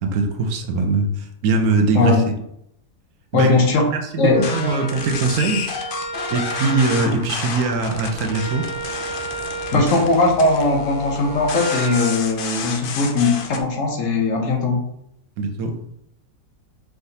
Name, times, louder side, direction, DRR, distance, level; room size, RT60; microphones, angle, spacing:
voice 1, 0.0-2.2 3.3-3.5 3.8-5.7 6.3-8.7 9.7-9.8 15.4-15.8, right 3 dB, 80° right, 5 dB, 1.1 m, -21 dB
voice 2, 1.9-2.3 3.3-3.9 4.2-4.4 9.7-14.8, left 3 dB, 65° left, 1 dB, 1.1 m, -19 dB
sound 1, 4.3-13.6, left 5 dB, 80° left, 0.4 m, -31 dB
Wind instrument woodwind instrument, 4.3-12.3, right 3 dB, 50° right, 1.6 m, -33 dB
4.7 x 3.4 x 2.7 m, 0.75 s
omnidirectional pair, 1.6 m